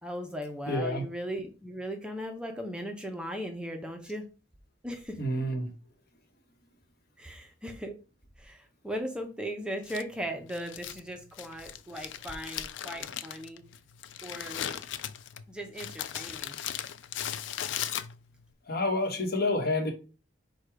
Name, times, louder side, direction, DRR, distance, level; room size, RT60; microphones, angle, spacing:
voice 1, 0.0-4.3 4.8-5.2 7.2-8.0 8.4-13.6 14.2-14.8 15.5-16.6, equal, 5° right, 0.5 m, -38 dB
voice 2, 0.7-1.1 5.2-5.7 18.7-19.9, left 2 dB, 60° left, 1.0 m, -28 dB
Crumpling crinkling, 9.8-18.5, left 10 dB, 85° left, 0.3 m, -38 dB
4.6 x 2.2 x 4.7 m
head